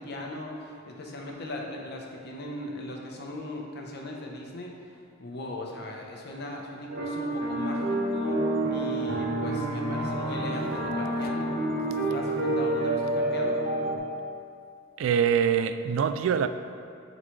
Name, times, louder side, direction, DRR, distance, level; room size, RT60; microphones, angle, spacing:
voice 1, 0.0-11.5 11.9-13.6, left 1 dB, 55° left, 0.9 m, -38 dB
sound 1, 6.9-14.0, right 1 dB, 55° right, 1.0 m, -28 dB
voice 2, 15.0-16.5, right 7 dB, 80° right, 0.3 m, -24 dB
11.0 x 4.0 x 3.2 m
head